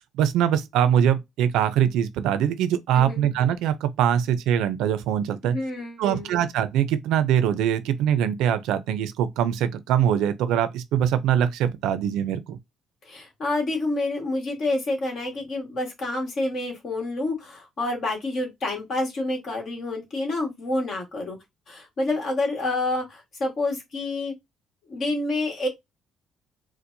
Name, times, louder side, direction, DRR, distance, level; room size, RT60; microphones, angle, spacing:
voice 1, 0.2-5.6 6.0-12.6, right 9 dB, 85° right, 0.5 m, -23 dB
voice 2, 5.4-6.3 13.0-21.4 21.7-24.3 24.9-25.7, left 2 dB, 45° left, 1.5 m, -28 dB
4.4 x 2.1 x 2.6 m
cardioid pair, 140°, 0 cm